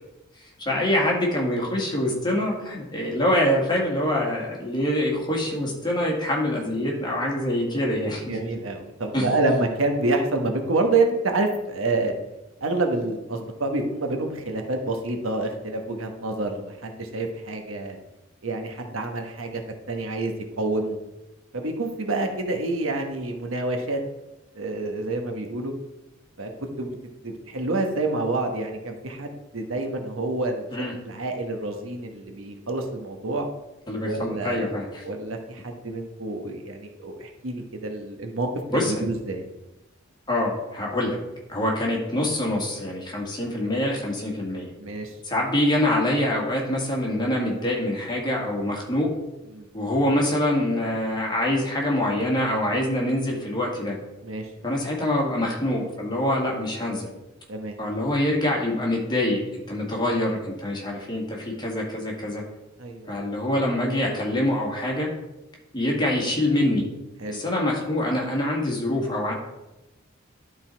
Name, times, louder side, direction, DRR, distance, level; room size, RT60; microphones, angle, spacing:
voice 1, 0.4-8.2 9.1-9.2 30.7-30.9 33.9-35.0 38.7-39.0 40.3-41.2 41.5-44.7 45.2-49.1 49.7-54.0 54.6-57.1 57.8-62.4 63.1-65.1 65.7-66.8 67.3-69.3, left 1 dB, 20° left, -2 dB, 2.0 m, -25 dB
voice 2, 8.3-12.1 12.6-18.0 18.4-19.6 19.9-21.0 21.5-24.0 24.5-25.7 26.4-26.5 26.8-27.0 27.2-33.5 34.0-34.7 35.0-39.4 44.8-45.1 49.5-49.7 54.2-54.5 57.5-57.7 62.8-63.2 67.2-67.4, right 2 dB, 85° right, 4 dB, 1.2 m, -28 dB
11.5 x 4.1 x 4.5 m, 1.0 s
head